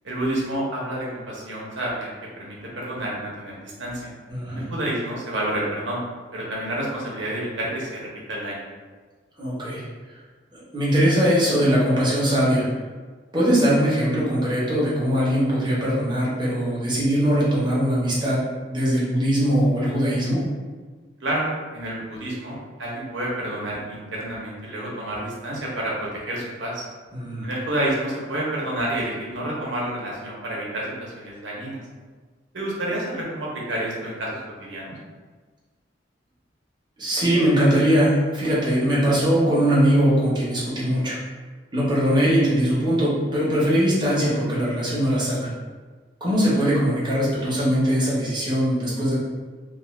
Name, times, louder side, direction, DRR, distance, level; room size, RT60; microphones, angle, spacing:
voice 1, 0.0-4.1 4.5-6.0 6.3-8.6 21.2-26.8 27.4-31.8 32.5-35.0, right 1 dB, 75° right, -4 dB, 0.8 m, -29 dB
voice 2, 4.3-4.7 9.4-9.8 10.7-12.6 13.3-18.4 18.7-20.5 27.1-27.5 37.0-41.2 41.7-45.5 46.2-49.2, equal, 25° right, -8 dB, 0.9 m, -21 dB
2.5 x 2.4 x 3.1 m, 1.4 s
head